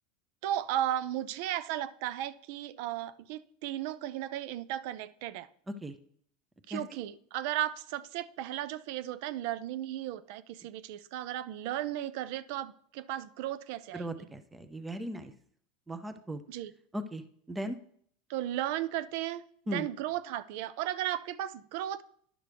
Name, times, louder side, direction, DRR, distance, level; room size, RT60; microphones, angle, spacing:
voice 1, 0.4-5.5 6.7-14.3 16.5-16.7 18.3-22.0, right 12 dB, 60° right, 0.5 m, -35 dB
voice 2, 13.9-15.3 15.9-16.4 16.9-17.2 17.5-17.8 19.7-19.9, right 1 dB, 10° right, 0.6 m, -37 dB
10.5 x 6.0 x 3.4 m
supercardioid pair, 140°, 0 cm